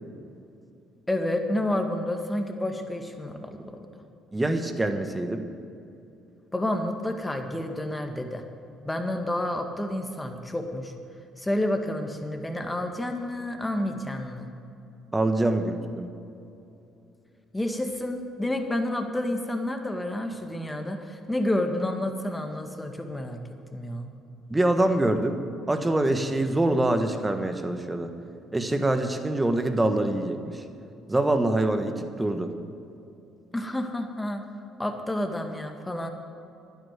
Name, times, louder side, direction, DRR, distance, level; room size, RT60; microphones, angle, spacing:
voice 1, 1.1-3.8 6.5-8.4 8.8-10.9 11.4-14.5 17.5-23.4 23.7-24.1 33.5-34.5 34.8-36.1, left 1 dB, 10° left, 5 dB, 1.8 m, -29 dB
voice 2, 4.3-5.4 15.1-16.1 24.5-25.4 25.7-28.1 28.5-30.5 31.1-32.5, right 1 dB, 15° right, 7 dB, 1.4 m, -25 dB
11.5 x 10.5 x 7.6 m, 2.6 s
hypercardioid pair, 55°, 0 cm